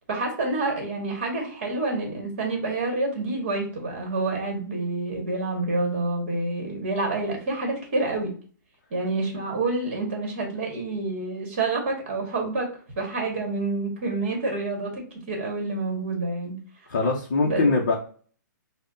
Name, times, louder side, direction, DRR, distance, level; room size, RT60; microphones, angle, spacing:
voice 1, 0.1-8.3 8.9-12.7 12.9-16.6 17.4-17.6, right 2 dB, 35° right, 1 dB, 1.3 m, -28 dB
voice 2, 16.9-17.9, left 3 dB, 35° left, -2 dB, 0.6 m, -22 dB
5.3 x 2.1 x 2.5 m, 0.42 s
hypercardioid pair, 180°, 10 cm